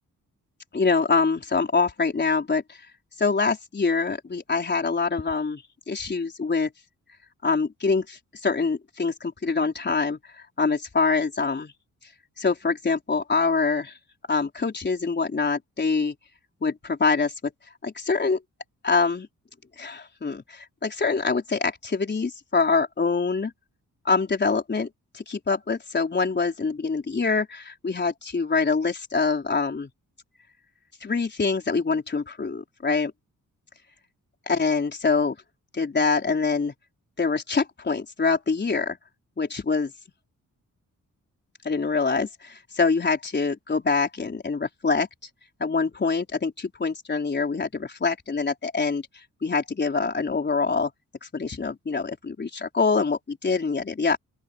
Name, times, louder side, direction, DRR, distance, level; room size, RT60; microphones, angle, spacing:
voice 1, 0.7-2.8 3.2-6.7 7.4-11.7 12.4-14.0 14.3-16.1 16.6-17.5 17.8-18.4 18.8-19.3 19.8-23.5 24.0-24.9 25.1-29.9 31.0-33.1 34.5-35.4 35.7-36.7 37.2-39.0 39.4-39.9 41.6-45.1 45.6-49.0 49.4-50.9 51.2-54.2, left 4 dB, 30° left, 4.3 m, -25 dB
open air
cardioid pair, 105°, 33 cm